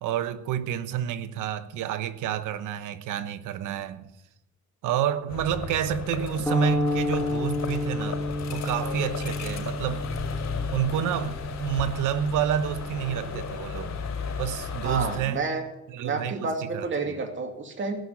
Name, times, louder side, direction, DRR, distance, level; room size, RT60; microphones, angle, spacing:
voice 1, 0.0-4.1 4.8-10.1 10.7-14.0 14.4-15.4 15.9-16.9, right 9 dB, 90° right, 1.0 m, -29 dB
sound 1, 5.3-15.2, left 5 dB, 65° left, 5.3 m, -35 dB
sound 2, 6.5-14.8, left 2 dB, 5° left, 2.2 m, -32 dB
voice 2, 14.8-15.6 16.0-18.0, right 3 dB, 40° right, 2.6 m, -30 dB
17.5 x 6.4 x 9.8 m
cardioid pair, 90°, 30 cm